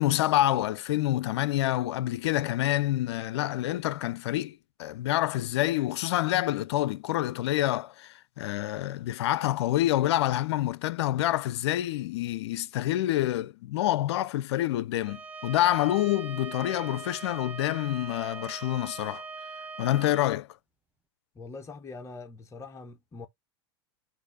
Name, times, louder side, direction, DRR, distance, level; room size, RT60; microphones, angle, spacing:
voice 1, 0.0-19.2 19.8-20.5, left 14 dB, 70° left, 0.5 m, -27 dB
Bowed string instrument, 15.0-20.3, right 4 dB, 10° right, 0.6 m, -41 dB
voice 2, 21.3-23.3, left 3 dB, 20° left, 0.8 m, -43 dB
4.0 x 2.6 x 4.7 m
hypercardioid pair, 100°, 14 cm